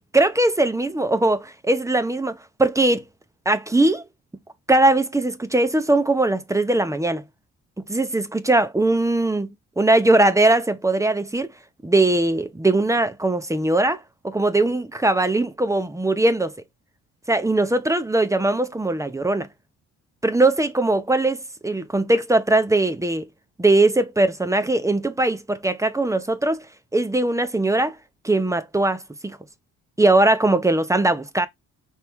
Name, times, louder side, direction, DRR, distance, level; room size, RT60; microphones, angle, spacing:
voice 1, 0.1-3.0 3.5-4.0 4.7-7.2 7.9-11.5 11.8-16.5 17.3-19.5 20.2-23.3 23.6-26.6 26.9-28.0 28.2-29.4 30.0-31.5, right 2 dB, 10° right, 0.8 m, -20 dB
4.6 x 3.3 x 3.4 m
cardioid pair, 90°, 30 cm